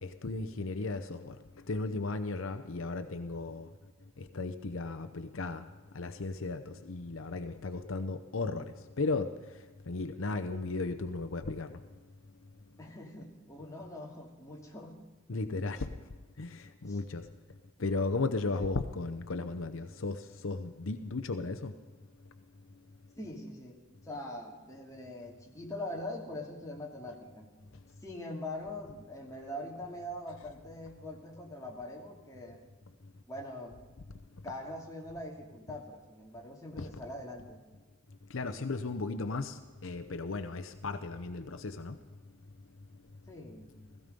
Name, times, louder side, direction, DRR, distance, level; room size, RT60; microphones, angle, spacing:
voice 1, 0.0-1.4 1.7-3.7 4.2-5.7 5.9-9.3 9.9-11.8 15.3-15.9 16.4-17.3 17.8-21.7 36.8-36.9 38.3-42.0, left 3 dB, 70° left, 0.8 m, -35 dB
voice 2, 12.8-15.0 16.9-17.0 18.6-18.7 23.2-23.8 24.0-27.5 28.0-32.6 33.3-33.8 34.4-37.6 43.3-43.8, left 1 dB, 15° left, 2.6 m, -43 dB
16.5 x 16.0 x 5.3 m
head